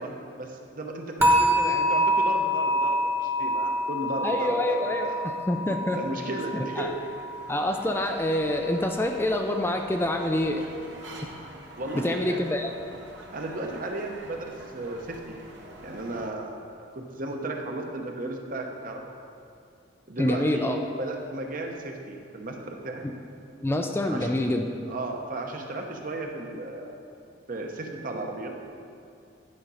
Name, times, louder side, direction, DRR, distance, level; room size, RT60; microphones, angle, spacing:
voice 1, 0.0-5.3 5.9-7.0 11.8-12.5 13.3-15.4 15.8-19.1 20.1-23.0 24.1-24.3 24.9-27.0 27.5-28.5, right 2 dB, 50° right, 2 dB, 0.9 m, -35 dB
sound 1, 1.2-8.3 8.6-9.0 9.5-9.6, equal, 15° right, 1.1 m, -26 dB
voice 2, 4.2-5.1 5.5-6.0 6.8-6.9 7.5-10.6 11.2-11.3 12.0-12.7 20.2-20.8 23.6-24.6, left 1 dB, 15° left, 3 dB, 0.4 m, -26 dB
sound 2, 6.2-16.3, right 2 dB, 75° right, 1.0 m, -46 dB
11.0 x 5.1 x 5.6 m, 2.4 s
head